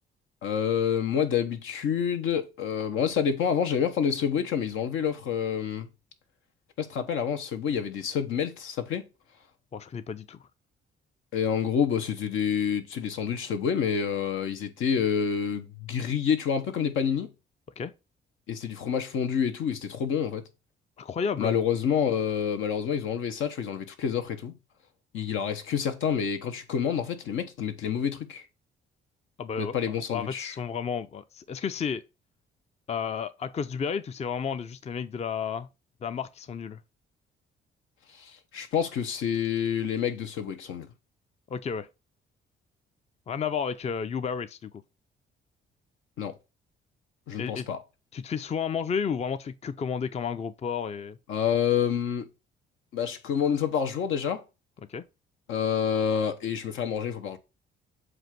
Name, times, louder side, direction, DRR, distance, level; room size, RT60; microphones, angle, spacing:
voice 1, 0.4-5.9 6.8-9.0 11.3-17.3 18.5-20.4 21.4-24.5 25.1-28.4 29.6-30.5 38.2-40.9 46.2-46.3 47.3-47.8 51.3-52.3 52.9-54.4 55.5-57.4, left 7 dB, 80° left, 1.1 m, -28 dB
voice 2, 9.7-10.4 17.8-17.9 21.0-21.6 29.4-29.8 30.1-32.0 32.9-35.7 36.0-36.8 41.5-41.9 43.3-44.7 47.4-47.7 48.1-51.2 54.9-55.0, left 6 dB, 35° left, 0.5 m, -32 dB
7.8 x 2.6 x 5.8 m
cardioid pair, 90°, 20 cm